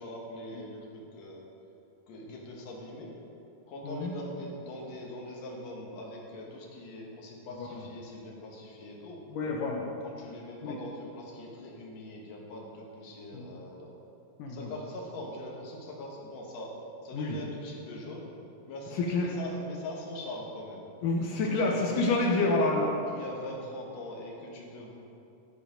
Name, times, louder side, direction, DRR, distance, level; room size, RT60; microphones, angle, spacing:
voice 1, 0.0-1.4 2.1-3.2 3.7-9.2 10.0-13.9 14.5-16.7 17.0-18.3 18.7-20.8 21.3-22.6 23.1-24.9, left 1 dB, 55° left, -2 dB, 2.1 m, -42 dB
voice 2, 9.3-9.9 10.6-10.8 13.3-13.5 14.4-14.7 17.1-17.4 19.0-19.3 21.0-22.9, left 2 dB, 75° left, -1 dB, 2.1 m, -28 dB
13.5 x 5.1 x 5.1 m, 2.7 s
omnidirectional pair, 4.4 m